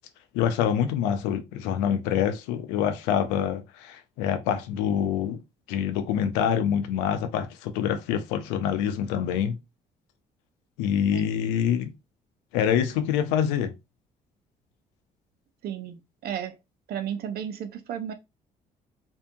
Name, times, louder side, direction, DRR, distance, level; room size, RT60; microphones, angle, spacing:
voice 1, 0.3-5.4 5.7-9.6 10.8-11.9 12.5-13.7, left 8 dB, 85° left, 0.4 m, -26 dB
voice 2, 15.6-16.5 16.9-18.1, right 9 dB, 65° right, 0.5 m, -33 dB
2.7 x 2.2 x 2.6 m
supercardioid pair, 65°, 18 cm